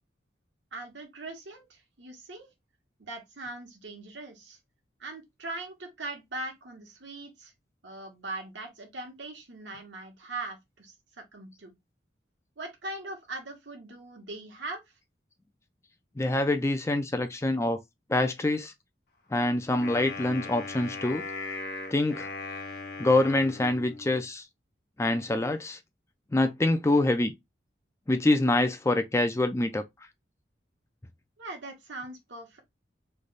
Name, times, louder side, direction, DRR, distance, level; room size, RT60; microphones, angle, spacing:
voice 1, 0.7-2.5 3.0-4.6 5.0-7.5 7.8-10.9 11.3-11.7 12.6-14.8 31.4-32.6, right 2 dB, 85° right, 1.2 m, -40 dB
voice 2, 16.2-17.8 18.1-18.7 19.3-21.2 21.9-22.3 23.0-24.5 25.0-25.8 26.3-27.3 28.1-29.8, left 2 dB, 15° left, 0.3 m, -25 dB
Wind instrument woodwind instrument, 19.8-24.2, left 3 dB, 55° left, 0.7 m, -39 dB
3.2 x 2.2 x 3.9 m
head